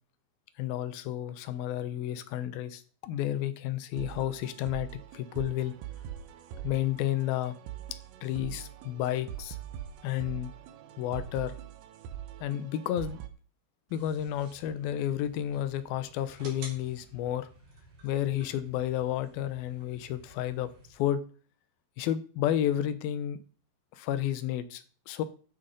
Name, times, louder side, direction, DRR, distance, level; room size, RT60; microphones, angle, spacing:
voice 1, 0.6-4.9 5.1-5.7 6.6-7.6 8.2-9.6 10.0-10.5 11.0-11.6 12.4-13.2 13.9-17.5 18.0-21.2 22.0-23.4 23.9-25.2, left 12 dB, 75° left, 13 dB, 2.3 m, -31 dB
sound 1, 3.9-13.3, right 10 dB, 80° right, 3.3 m, -43 dB
sound 2, 13.9-20.9, right 2 dB, 50° right, 5.1 m, -52 dB
13.5 x 7.3 x 5.3 m, 0.41 s
omnidirectional pair, 5.1 m